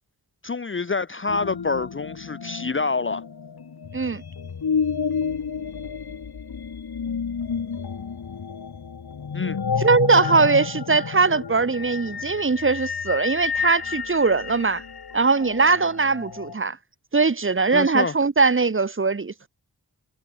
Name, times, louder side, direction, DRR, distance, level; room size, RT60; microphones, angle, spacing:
voice 1, 0.4-3.2 9.3-9.6 17.7-18.1, left 4 dB, 30° left, 0.8 m, -27 dB
sound 1, 1.3-16.6, left 6 dB, 75° left, 2.9 m, -30 dB
voice 2, 9.8-14.8 15.1-16.8 17.1-19.5, right 4 dB, 30° right, 1.3 m, -21 dB
wide cardioid pair, 80°, 38 cm